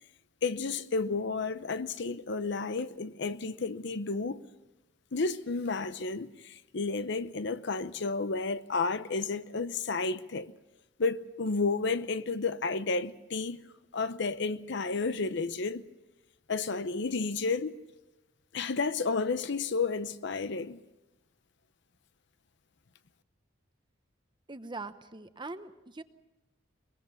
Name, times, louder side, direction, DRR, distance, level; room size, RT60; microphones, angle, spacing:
voice 1, 0.4-4.5 5.1-10.5 11.0-13.6 13.9-15.9 16.5-17.7 18.5-20.8, left 4 dB, 60° left, 0.8 m, -31 dB
voice 2, 24.5-26.0, right 3 dB, 25° right, 0.9 m, -42 dB
22.5 x 21.0 x 7.0 m
head